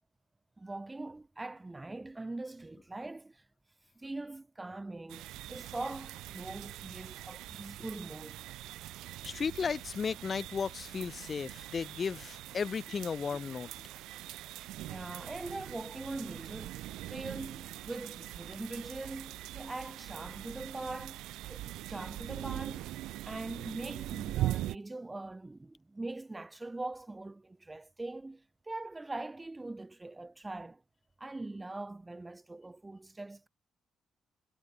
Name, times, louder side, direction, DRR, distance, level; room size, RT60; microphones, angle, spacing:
voice 1, 0.6-3.4 4.0-8.4 14.9-22.9 23.2-30.8 31.2-33.5, right 2 dB, 15° right, 2.2 m, -42 dB
sound 1, 5.1-24.8, right 15 dB, 90° right, 0.4 m, -42 dB
voice 2, 9.2-13.7, left 6 dB, 40° left, 1.2 m, -35 dB
cardioid pair, 90°, 0 cm